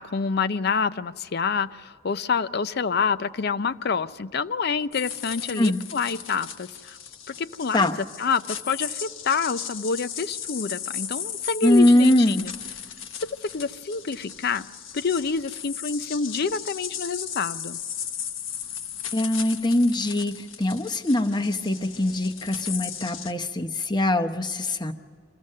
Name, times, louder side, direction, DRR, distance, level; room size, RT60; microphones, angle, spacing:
voice 1, 0.0-7.0 7.3-7.9 8.2-12.5 13.1-14.7 14.9-17.8, left 5 dB, 55° left, 14 dB, 0.5 m, -27 dB
sound 1, 4.9-23.3, left 8 dB, 80° left, 1.0 m, -36 dB
voice 2, 11.6-12.5 19.1-24.9, left 1 dB, 20° left, 6 dB, 0.8 m, -22 dB
25.5 x 15.5 x 6.6 m, 2.1 s
head